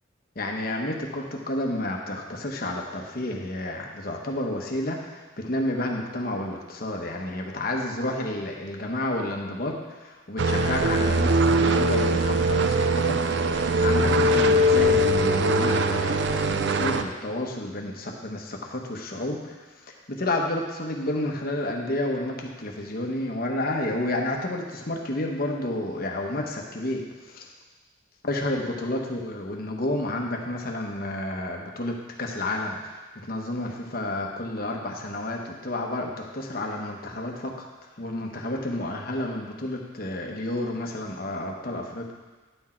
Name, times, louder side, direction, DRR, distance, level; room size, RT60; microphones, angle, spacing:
voice 1, 0.3-13.2 13.5-13.6 13.8-19.5 19.9-27.5 28.2-37.7 38.0-42.1, left 1 dB, 50° left, 1 dB, 1.1 m, -30 dB
sound 1, 10.4-17.0, right 1 dB, 60° right, 0.4 m, -21 dB
10.0 x 6.2 x 4.4 m, 1.3 s
head